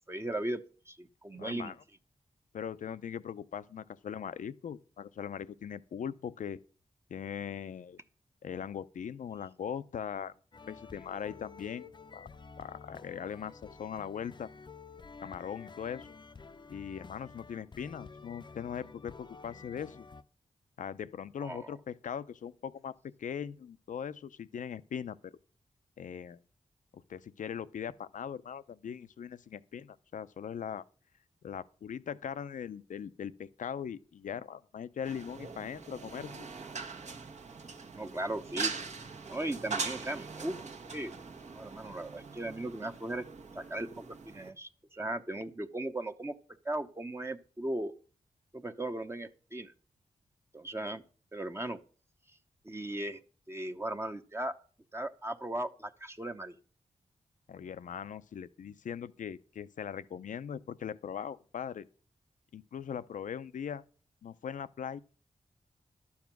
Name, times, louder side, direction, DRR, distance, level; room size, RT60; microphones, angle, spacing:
voice 1, 0.1-1.7 21.4-21.7 38.0-38.7 39.3-40.6 40.9-41.1 41.5-43.3 43.5-46.3 46.6-47.9 48.5-49.7 50.5-51.0 51.3-51.8 52.6-53.2 53.5-54.6 54.9-56.5, right 1 dB, 20° right, 0.8 m, -37 dB
voice 2, 1.4-1.8 2.5-6.6 7.1-8.0 8.4-10.3 10.7-12.3 12.6-14.5 15.2-16.2 16.7-20.1 20.8-25.3 26.0-26.4 26.9-30.8 31.4-36.5 57.5-61.9 62.5-63.8 64.2-65.0, left 8 dB, 80° left, 0.6 m, -40 dB
sound 1, 10.5-20.2, left 4 dB, 35° left, 0.6 m, -51 dB
sound 2, 35.0-44.5, right 4 dB, 65° right, 1.2 m, -41 dB
12.0 x 7.2 x 6.0 m
cardioid pair, 70°, 13 cm